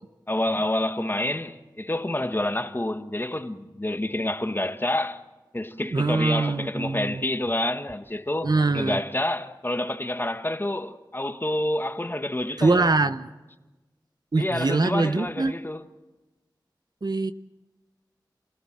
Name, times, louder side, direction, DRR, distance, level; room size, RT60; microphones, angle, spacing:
voice 1, 0.3-5.2 5.5-12.9 14.4-15.8, left 1 dB, 25° left, 1.4 m, -28 dB
voice 2, 5.8-7.2 8.4-9.0 12.6-13.3 14.3-15.6 17.0-17.3, right 3 dB, 60° right, 0.9 m, -23 dB
28.5 x 16.5 x 7.4 m
wide cardioid pair, 55°, 8 cm